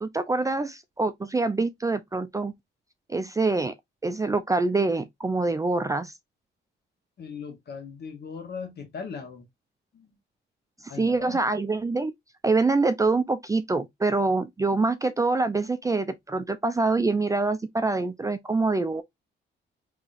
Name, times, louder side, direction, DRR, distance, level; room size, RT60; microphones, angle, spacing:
voice 1, 0.0-2.5 3.1-3.7 4.0-6.1 10.8-12.1 12.4-19.0, right 3 dB, 15° right, 0.4 m, -25 dB
voice 2, 7.2-9.4 9.9-10.1 10.9-11.4, left 5 dB, 55° left, 1.3 m, -38 dB
4.0 x 2.9 x 2.5 m
cardioid pair, 90°, 20 cm